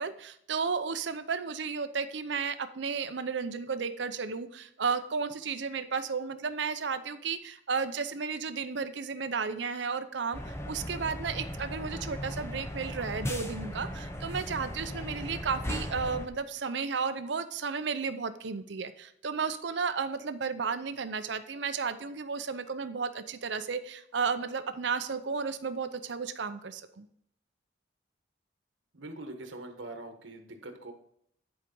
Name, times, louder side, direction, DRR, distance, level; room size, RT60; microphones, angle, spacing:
voice 1, 0.0-27.1, right 5 dB, 70° right, 11 dB, 0.6 m, -33 dB
sound 1, 10.3-16.3, equal, 15° left, 0.8 m, -37 dB
voice 2, 28.9-30.9, right 2 dB, 85° right, 6 dB, 1.3 m, -43 dB
10.5 x 4.7 x 5.3 m, 0.69 s
head